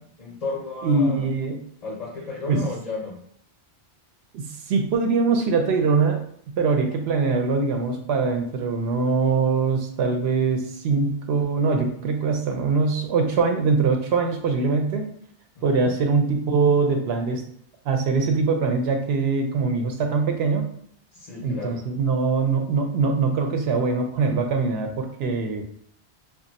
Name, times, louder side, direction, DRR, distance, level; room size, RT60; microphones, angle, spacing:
voice 1, 0.0-1.3 1.8-3.2 15.6-15.9 21.1-21.8, left 3 dB, 50° left, -3 dB, 0.4 m, -33 dB
voice 2, 0.8-1.6 2.5-2.7 4.3-6.2 6.5-15.0 15.6-17.4 17.9-20.6 21.4-25.6, right 4 dB, 70° right, 4 dB, 0.8 m, -22 dB
2.4 x 2.1 x 3.9 m, 0.64 s
omnidirectional pair, 1.1 m